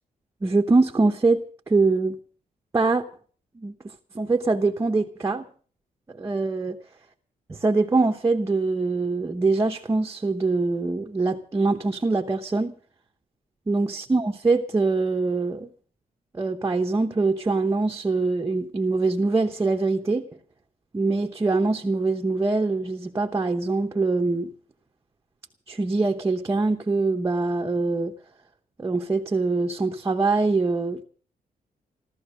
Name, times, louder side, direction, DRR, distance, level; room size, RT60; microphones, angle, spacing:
voice 1, 0.4-2.2 2.7-3.0 3.6-3.7 4.1-5.4 6.1-6.8 7.5-12.7 13.7-15.7 16.3-20.3 20.9-24.5 25.7-28.1 28.8-31.0, right 3 dB, 20° right, 0.9 m, -23 dB
14.5 x 14.0 x 6.4 m
wide cardioid pair, 160°, 15 cm